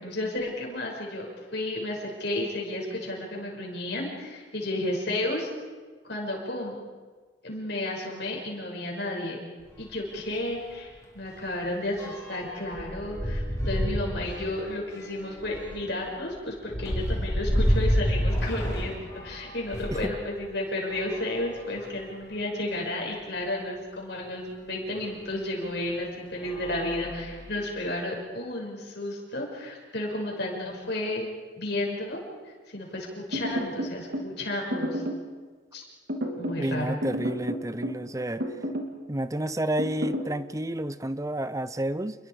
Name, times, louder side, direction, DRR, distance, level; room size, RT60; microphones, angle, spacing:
voice 1, 0.0-5.5 6.0-6.8 7.4-9.4 9.8-31.2 31.6-32.2 32.4-35.0 35.7-35.9 36.3-37.0, left 1 dB, 60° left, -1 dB, 6.3 m, -32 dB
sound 1, 9.6-9.8 10.1-10.3 10.6-20.1 20.8-22.1 22.8-22.9 23.2-23.3 25.0-25.1 25.7-26.0 26.4-27.6, equal, 20° left, 5.3 m, -30 dB
sound 2, 33.3-34.3 34.7-35.3 36.1-36.7 37.0-38.0 38.4-39.0 39.8-40.3, equal, 60° right, 3.0 m, -31 dB
voice 2, 36.6-38.4 39.1-42.1, right 1 dB, 15° right, 14 dB, 0.7 m, -30 dB
29.0 x 21.5 x 5.0 m, 1.4 s
head